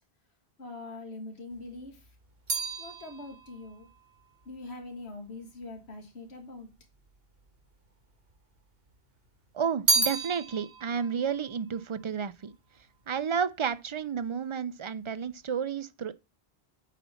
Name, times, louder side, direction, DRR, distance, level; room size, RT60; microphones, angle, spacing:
voice 1, 0.6-2.2 2.8-3.9 4.5-6.7, left 2 dB, 80° left, 1.8 m, -43 dB
sound 1, 1.5-5.9 6.7-7.5 7.8-8.9 9.3-12.8 13.1-13.6, right 3 dB, 65° right, 2.1 m, -33 dB
voice 2, 9.5-12.5 13.1-16.1, right 7 dB, 45° right, 0.4 m, -31 dB
8.3 x 4.1 x 5.6 m
omnidirectional pair, 1.1 m